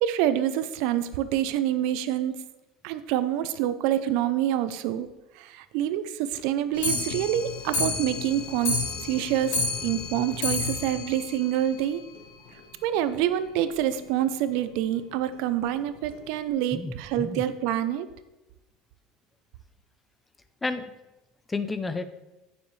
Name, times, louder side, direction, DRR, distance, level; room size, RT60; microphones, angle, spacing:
voice 1, 0.0-2.4 2.8-5.1 5.4-12.0 12.8-18.1, right 11 dB, 70° right, 13 dB, 0.6 m, -27 dB
Clock, 6.7-12.2 12.6-12.7 12.9-13.0 13.4-13.5 13.7-13.8 14.5-14.6 15.3-15.4 16.1-16.2, left 3 dB, 85° left, 3.2 m, -31 dB
voice 2, 16.7-17.4 20.6-20.9 21.5-22.0, left 3 dB, 15° left, 11 dB, 0.6 m, -31 dB
15.0 x 7.1 x 3.3 m, 1.0 s
supercardioid pair, 135°, 0 cm